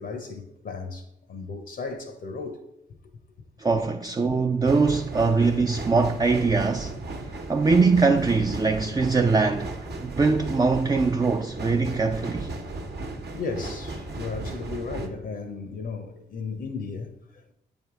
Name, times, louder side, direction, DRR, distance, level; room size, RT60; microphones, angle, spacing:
voice 1, 0.0-2.6 13.3-17.5, left 4 dB, 65° left, 0.7 m, -35 dB
voice 2, 3.6-7.0 7.5-9.8 10.0-12.5, right 4 dB, 20° right, 0.4 m, -22 dB
sound 1, 4.6-15.1, right 2 dB, 65° right, 1.0 m, -36 dB
8.4 x 3.5 x 3.5 m
supercardioid pair, 45°, 18 cm